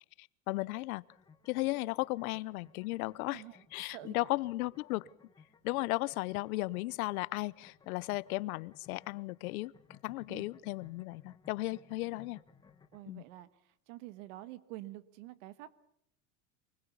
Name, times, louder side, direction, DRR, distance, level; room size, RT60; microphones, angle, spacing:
voice 1, 0.2-1.0 1.5-3.4 3.7-5.1 5.6-12.4 13.1-13.2, left 20 dB, 85° left, 21 dB, 0.8 m, -35 dB
sound 1, 1.0-13.0, left 5 dB, 10° left, 1.3 m, -61 dB
voice 2, 3.9-4.3 10.3-10.5 12.9-13.5 13.9-15.8, right 16 dB, 60° right, 15 dB, 1.5 m, -47 dB
24.5 x 20.5 x 7.0 m, 0.70 s
supercardioid pair, 175°, 42 cm